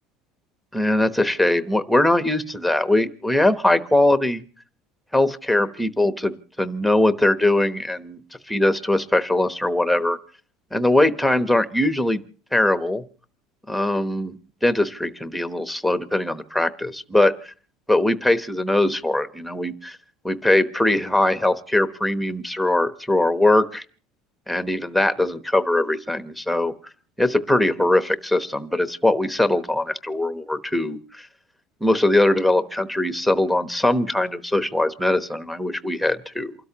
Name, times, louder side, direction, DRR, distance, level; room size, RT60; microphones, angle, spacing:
voice 1, 0.7-4.4 5.1-8.2 8.5-10.2 10.7-12.2 12.5-13.0 13.7-17.5 17.9-20.0 20.2-23.8 24.5-26.7 27.2-31.2 31.8-36.5, left 1 dB, ahead, 9 dB, 1.0 m, -21 dB
28.5 x 13.0 x 2.9 m, 0.41 s
cardioid pair, 135°, 0 cm